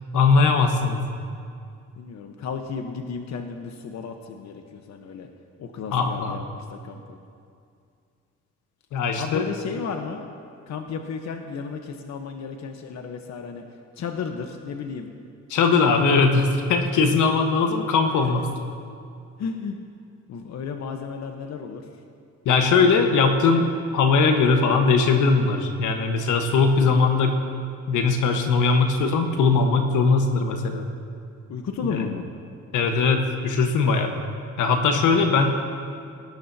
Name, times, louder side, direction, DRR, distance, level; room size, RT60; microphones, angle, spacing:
voice 1, 0.1-1.0 5.9-6.3 8.9-9.5 15.5-18.5 22.4-27.4 27.9-30.9 31.9-32.1 32.7-34.1 34.6-35.5, left 4 dB, 85° left, 4 dB, 1.4 m, -20 dB
voice 2, 2.0-5.3 5.6-6.4 6.7-7.2 9.2-10.2 10.7-13.6 14.0-15.1 19.4-19.8 20.3-21.8 31.5-32.2, left 5 dB, 65° left, 4 dB, 1.1 m, -33 dB
20.0 x 18.5 x 2.8 m, 2.4 s
cardioid pair, 90°, 30 cm